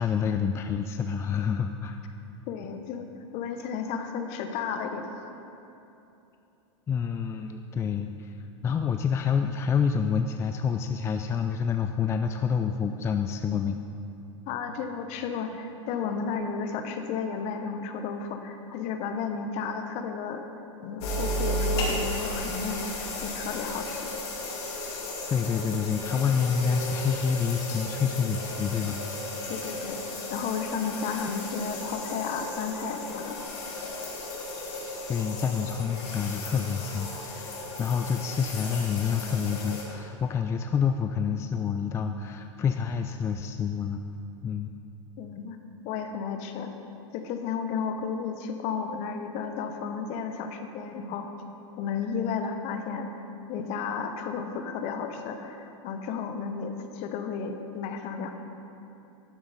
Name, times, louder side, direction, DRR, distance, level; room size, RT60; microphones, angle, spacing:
voice 1, 0.0-2.0 6.9-8.3 8.6-13.8 25.3-29.0 35.1-44.0 44.4-44.7, left 6 dB, 15° left, 6 dB, 0.3 m, -28 dB
voice 2, 2.5-3.1 3.3-5.3 14.5-20.4 20.8-24.1 29.5-30.0 30.3-33.4 45.2-45.6 45.8-46.7 47.1-51.3 51.8-53.1 53.5-58.3, left 6 dB, 45° left, 6 dB, 1.0 m, -33 dB
sound 1, 21.0-39.8, left 1 dB, 60° left, 2.5 m, -34 dB
12.0 x 7.1 x 4.2 m, 2.8 s
hypercardioid pair, 115°, 16 cm